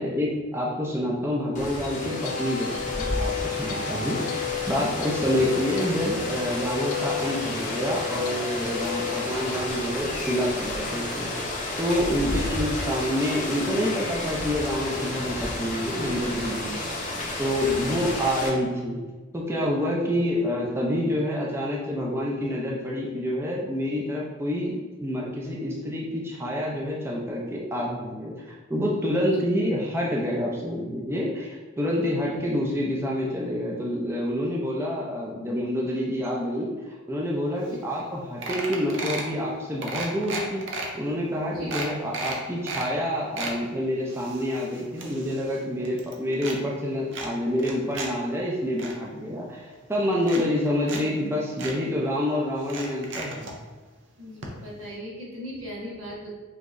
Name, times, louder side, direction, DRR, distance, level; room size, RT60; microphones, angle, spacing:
voice 1, 0.0-2.7 3.0-4.2 4.7-11.3 11.8-16.8 17.4-19.0 19.3-53.5, equal, 10° right, -3 dB, 0.5 m, -27 dB
Rain, 1.5-18.5, left 1 dB, 35° left, 0.7 m, -31 dB
sound 1, 1.7-10.1, left 9 dB, 85° left, 0.5 m, -34 dB
voice 2, 17.6-18.1 29.3-29.4 37.7-37.8 41.5-41.7 54.2-56.3, left 1 dB, 90° right, -4 dB, 1.3 m, -38 dB
sound 2, 37.7-37.8 38.0-38.1 38.4-39.3 39.8-40.9 41.3-41.4 41.7-42.9 43.2-43.6 44.1-45.6 45.8-46.6 47.1-48.1 48.4-48.9 49.7-49.8 50.2-51.0 51.3-51.4 51.6-51.7 52.6-53.5 54.4-54.5 54.8-54.9, right 3 dB, 60° right, 0.6 m, -34 dB
5.6 x 3.0 x 2.5 m, 1.3 s
head